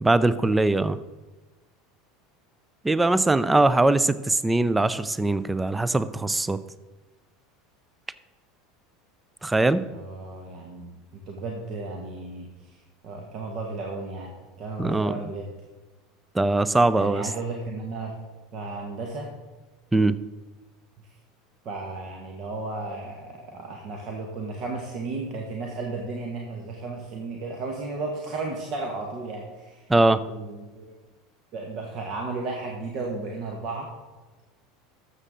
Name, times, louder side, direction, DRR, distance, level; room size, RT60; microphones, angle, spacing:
voice 1, 0.0-1.0 2.8-6.6 9.4-9.8 14.8-15.1 16.3-17.3 19.9-20.1 29.9-30.2, right 2 dB, 10° right, 15 dB, 0.5 m, -21 dB
voice 2, 9.9-12.5 13.0-15.5 16.9-18.2 18.5-19.3 21.6-29.8 30.3-30.9 31.5-33.9, right 3 dB, 45° right, 1 dB, 1.6 m, -34 dB
12.5 x 7.7 x 3.8 m, 1.2 s
figure-of-eight pair, 75°, 0 cm